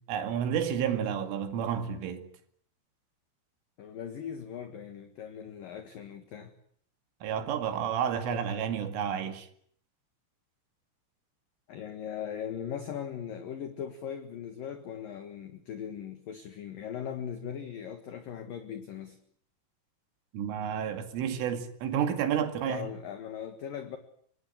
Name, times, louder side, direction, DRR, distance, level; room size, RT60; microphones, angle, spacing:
voice 1, 0.1-2.3 7.2-9.5 20.3-22.9, right 8 dB, 90° right, 4.8 m, -30 dB
voice 2, 3.8-6.5 11.7-19.2 22.6-24.0, left 8 dB, 60° left, 2.7 m, -39 dB
25.0 x 19.5 x 9.3 m
omnidirectional pair, 5.6 m